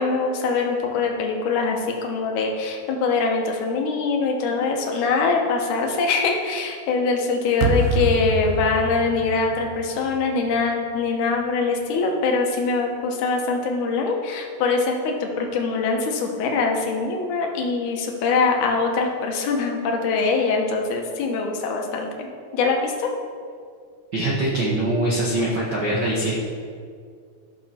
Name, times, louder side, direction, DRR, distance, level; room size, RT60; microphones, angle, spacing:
voice 1, 0.0-22.3 22.5-23.1, left 4 dB, 70° left, 1 dB, 2.5 m, -23 dB
sound 1, 7.6-10.7, right 3 dB, 85° right, 2.6 m, -26 dB
voice 2, 24.1-26.3, right 1 dB, 70° right, -5 dB, 1.0 m, -23 dB
12.5 x 6.5 x 4.3 m, 2.1 s
omnidirectional pair, 3.7 m